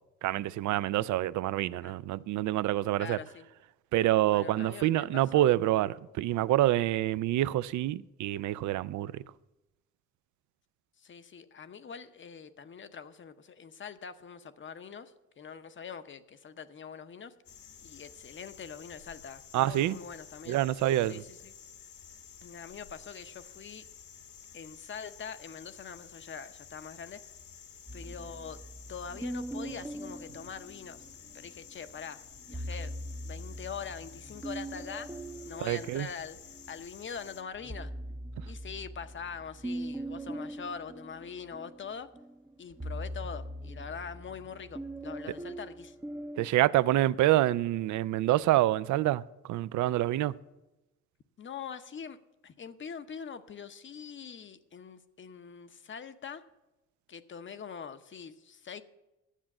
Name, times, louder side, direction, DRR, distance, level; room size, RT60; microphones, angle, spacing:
voice 1, 0.2-3.2 3.9-9.1 19.5-20.0 20.5-21.2 35.6-36.1 46.4-49.2 49.5-50.3, right 14 dB, 75° right, 0.5 m, -27 dB
voice 2, 3.0-3.5 4.3-5.5 11.0-17.3 17.8-20.6 21.0-21.5 22.4-23.8 24.5-27.2 27.9-28.6 28.9-31.1 31.3-32.2 32.5-32.9 33.2-35.2 35.5-36.4 36.7-37.9 38.5-42.1 42.6-46.0 51.4-52.2 52.4-56.4 57.1-58.8, left 6 dB, 40° left, 0.7 m, -43 dB
sound 1, 17.4-37.4, left 7 dB, 75° left, 1.6 m, -52 dB
sound 2, 27.9-31.4 32.3-36.8 37.2-46.5, right 1 dB, 10° right, 0.6 m, -41 dB
10.0 x 7.6 x 7.1 m
cardioid pair, 90°, 30 cm